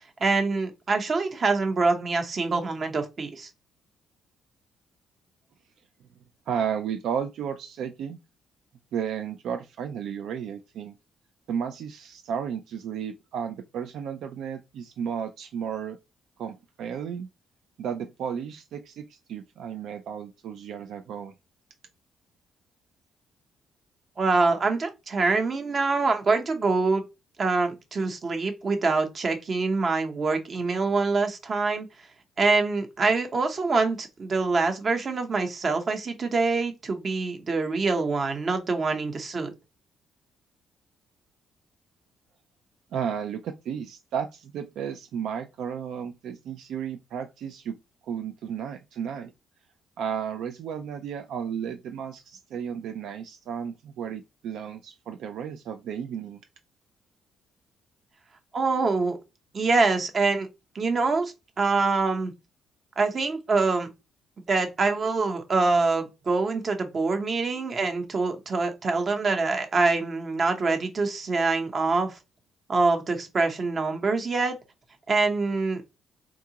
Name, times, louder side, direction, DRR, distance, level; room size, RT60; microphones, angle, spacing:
voice 1, 0.2-3.5 24.2-27.0 27.4-31.9 32.4-39.5 58.5-59.2 59.5-60.5 60.7-62.3 63.0-63.9 64.5-72.1 72.7-74.6 75.1-75.8, right 3 dB, 45° right, 0.8 m, -25 dB
voice 2, 6.5-8.2 8.9-10.9 11.5-16.0 16.4-17.3 17.8-21.3 42.9-47.7 48.0-49.3 50.0-56.4, right 8 dB, 75° right, 0.3 m, -33 dB
3.7 x 2.3 x 2.8 m
cardioid pair, 90°, 0 cm